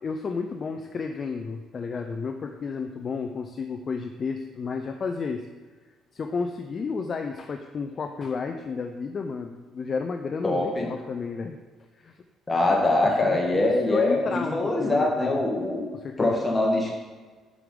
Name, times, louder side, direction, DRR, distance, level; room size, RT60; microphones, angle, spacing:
voice 1, 0.0-5.5 6.1-11.6 12.0-12.2 13.0-15.4 15.9-16.4, left 5 dB, 35° left, 5 dB, 0.3 m, -32 dB
voice 2, 10.4-10.9 12.5-15.8 16.2-16.9, left 2 dB, 15° left, -1 dB, 1.1 m, -23 dB
6.8 x 4.9 x 3.7 m, 1.4 s
cardioid pair, 145°, 0 cm